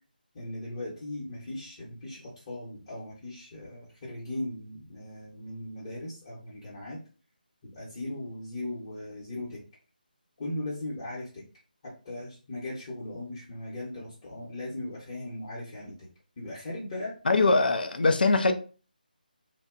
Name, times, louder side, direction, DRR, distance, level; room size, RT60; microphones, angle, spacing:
voice 1, 0.3-7.0 7.6-9.6 10.4-11.4 11.8-16.1 16.4-17.1, left 1 dB, 35° left, 0.8 m, -38 dB
voice 2, 17.3-18.5, left 3 dB, 70° left, 0.4 m, -22 dB
2.7 x 2.1 x 2.4 m
figure-of-eight pair, 155°, 5 cm